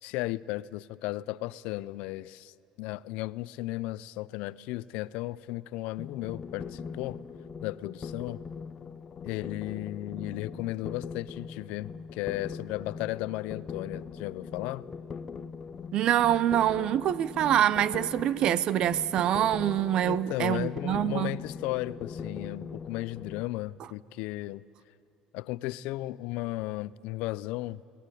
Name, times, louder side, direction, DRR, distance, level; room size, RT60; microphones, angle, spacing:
voice 1, 0.0-7.2 7.6-8.4 9.2-14.9 20.0-24.6 25.3-27.8, left 17 dB, 80° left, 0.5 m, -35 dB
sound 1, 6.0-23.4, left 6 dB, 25° left, 0.8 m, -41 dB
voice 2, 15.9-21.4, right 11 dB, 45° right, 0.5 m, -25 dB
23.0 x 18.5 x 9.9 m
cardioid pair, 175°, 2 cm